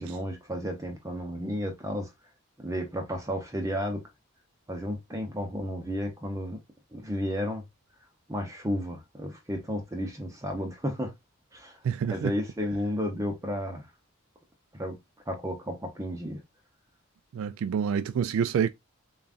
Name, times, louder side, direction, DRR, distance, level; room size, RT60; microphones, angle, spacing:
voice 1, 0.0-2.1 2.6-4.0 4.7-6.6 6.9-7.6 8.3-11.1 11.5-11.8 12.1-13.9 14.7-15.0 15.3-16.4, equal, 15° right, 0.7 m, -32 dB
voice 2, 11.8-12.3 17.3-18.7, right 7 dB, 80° right, 0.3 m, -27 dB
6.9 x 2.4 x 2.4 m
head